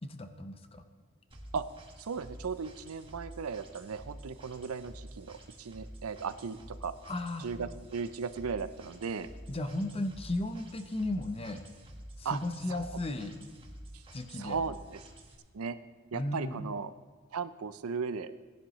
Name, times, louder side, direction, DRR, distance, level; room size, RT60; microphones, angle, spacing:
voice 1, 0.0-0.8 7.1-7.5 9.5-11.7 12.2-13.4 14.1-14.6 16.1-16.7, left 1 dB, 25° left, 8 dB, 0.7 m, -35 dB
sound 1, 1.3-15.4, right 1 dB, 25° right, 1.6 m, -50 dB
voice 2, 2.0-6.9 7.4-9.3 12.2-12.4 12.7-13.0 14.3-15.0 15.5-15.8 16.1-16.9 17.3-18.3, right 5 dB, 90° right, 13 dB, 0.5 m, -36 dB
18.5 x 10.5 x 3.1 m, 1.3 s
head